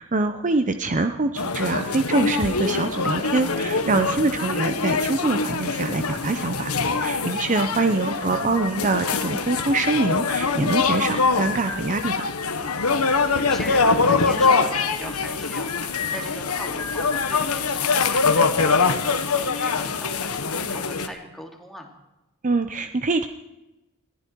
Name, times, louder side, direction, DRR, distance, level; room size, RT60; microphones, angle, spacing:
voice 1, 0.0-6.7 7.0-12.3 22.4-23.3, right 3 dB, 35° right, 8 dB, 0.8 m, -24 dB
sound 1, 1.4-21.1, left 4 dB, 85° left, 1.4 m, -24 dB
voice 2, 7.6-7.9 12.9-21.9, equal, ahead, 1 dB, 2.7 m, -40 dB
21.0 x 14.5 x 4.6 m, 0.98 s
head